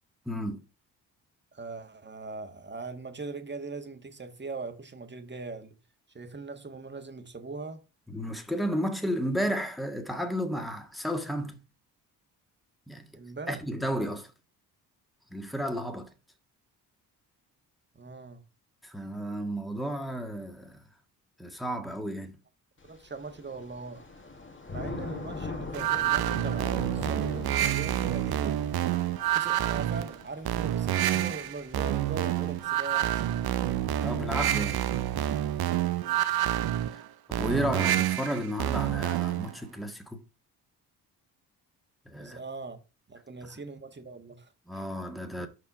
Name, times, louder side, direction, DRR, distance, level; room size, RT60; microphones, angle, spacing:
voice 1, 0.2-0.6 8.1-11.6 12.9-13.1 13.5-14.3 15.3-16.1 18.8-20.8 21.4-22.4 34.0-34.8 36.9-37.0 37.3-40.2 42.0-42.4 44.7-45.5, equal, ahead, 1.6 m, -33 dB
voice 2, 1.5-5.8 6.1-7.8 13.1-13.6 17.9-18.4 22.8-24.1 24.7-28.6 29.3-33.8 42.1-42.8 43.1-44.9 45.3-45.5, right 3 dB, 25° right, 1.6 m, -41 dB
Thunder / Rain, 22.8-32.8, left 3 dB, 30° left, 1.8 m, -42 dB
sound 1, 25.7-39.5, right 12 dB, 60° right, 0.8 m, -28 dB
5.4 x 4.9 x 5.1 m
supercardioid pair, 55°, 42 cm